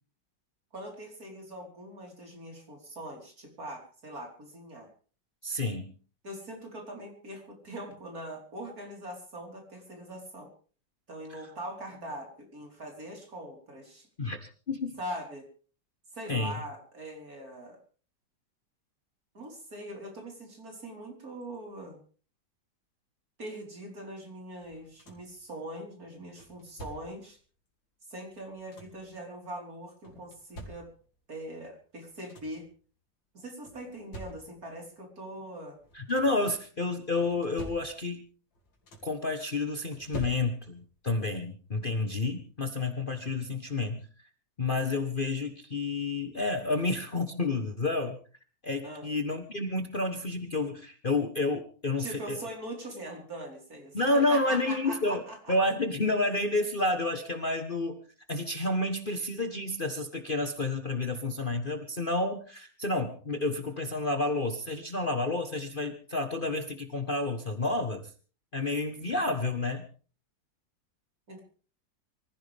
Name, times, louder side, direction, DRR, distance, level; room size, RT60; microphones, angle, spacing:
voice 1, 0.7-4.9 6.2-10.5 11.1-14.1 15.0-15.4 16.1-17.8 19.3-22.0 23.4-27.4 28.1-30.9 31.3-32.7 33.3-35.8 48.8-49.1 52.0-54.0 54.3-55.6 71.3-71.4, right 1 dB, 50° right, 1 dB, 5.0 m, -42 dB
voice 2, 5.4-5.9 11.3-11.4 14.2-15.0 16.3-16.6 35.9-38.2 39.0-44.3 44.6-48.2 48.6-52.4 53.9-55.2 55.5-58.0 58.3-68.1 68.5-69.9, left 2 dB, 30° left, 5 dB, 1.4 m, -30 dB
sound 1, 24.6-25.4 26.4-27.3 28.3-29.1 30.0-31.2 31.8-31.9 32.1-32.7 33.6-34.8 35.7-36.5 37.2-38.3 38.5-39.3 39.9-40.9 42.2-42.3 42.8-43.0, right 1 dB, 90° left, 3.6 m, -47 dB
24.5 x 15.5 x 3.6 m, 0.40 s
omnidirectional pair, 2.0 m